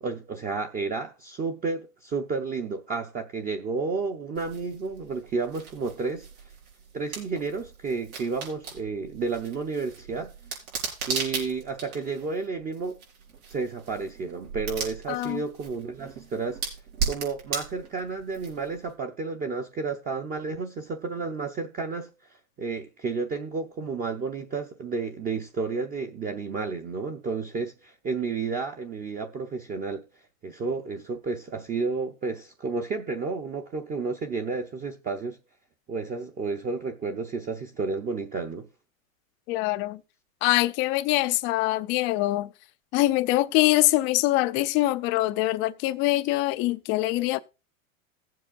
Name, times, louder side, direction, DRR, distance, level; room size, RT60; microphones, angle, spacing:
voice 1, 0.0-6.3 6.9-10.3 11.1-13.0 13.5-16.6 17.1-22.1 22.6-30.0 30.4-35.4 35.9-38.7, right 4 dB, 20° right, 0.7 m, -31 dB
sound 1, 4.3-18.9, right 5 dB, 90° right, 4.6 m, -37 dB
voice 2, 15.1-15.4 39.5-40.0 40.4-42.5 42.9-47.4, left 18 dB, 30° left, 0.4 m, -24 dB
17.5 x 7.6 x 2.5 m
hypercardioid pair, 130°, 42 cm